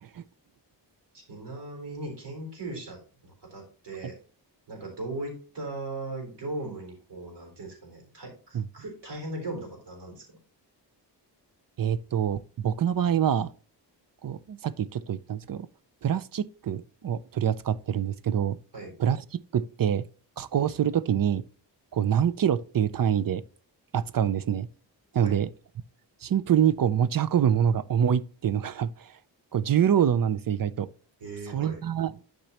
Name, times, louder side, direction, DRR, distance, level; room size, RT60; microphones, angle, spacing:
voice 1, 1.1-4.1 4.7-10.4 18.7-18.9 25.1-25.4 31.2-31.8, right 2 dB, 65° right, 4.0 m, -38 dB
voice 2, 11.8-13.5 14.2-15.7 16.0-18.6 19.0-19.2 19.5-20.1 20.4-21.4 21.9-23.4 23.9-24.7 25.1-25.5 26.2-29.1 29.5-30.9 31.5-32.1, right 9 dB, 50° right, 0.5 m, -25 dB
12.0 x 5.2 x 2.9 m
wide cardioid pair, 150°, 44 cm